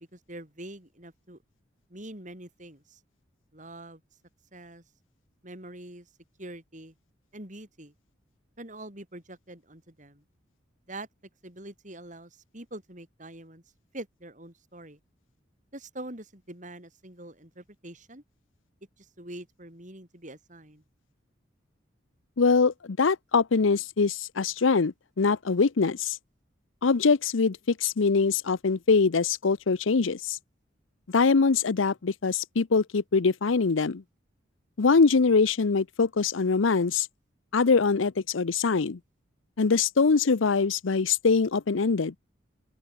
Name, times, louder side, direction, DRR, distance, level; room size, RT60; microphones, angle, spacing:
voice 1, 0.0-1.4 1.9-3.0 3.5-4.0 4.5-4.8 5.4-6.1 6.4-6.9 7.3-7.9 8.6-10.2 10.9-11.1 11.4-13.6 13.9-15.0 15.7-18.2 19.0-20.8, right 1 dB, 40° right, 5.3 m, -44 dB
voice 2, 22.4-26.2 26.8-30.4 31.1-34.0 34.8-37.1 37.5-39.0 39.6-42.2, left 4 dB, 85° left, 0.7 m, -23 dB
open air
head